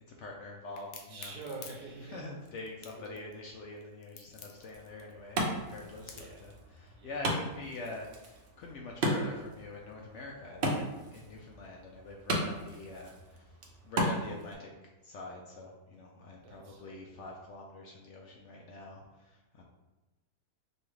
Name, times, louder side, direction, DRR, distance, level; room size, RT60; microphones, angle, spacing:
voice 1, 0.1-1.4 2.0-13.6 13.8-19.6, left 2 dB, 70° left, -1 dB, 0.7 m, -45 dB
Crack, 0.8-6.4, left 6 dB, 85° left, 1.1 m, -50 dB
voice 2, 1.1-2.3 3.0-3.3 6.0-6.4 7.0-7.2 16.4-17.3, right 3 dB, 85° right, 0 dB, 1.4 m, -47 dB
Wood, 4.5-14.5, right 1 dB, 55° right, 0.6 m, -36 dB
5.3 x 2.4 x 3.2 m, 1.1 s
omnidirectional pair, 1.6 m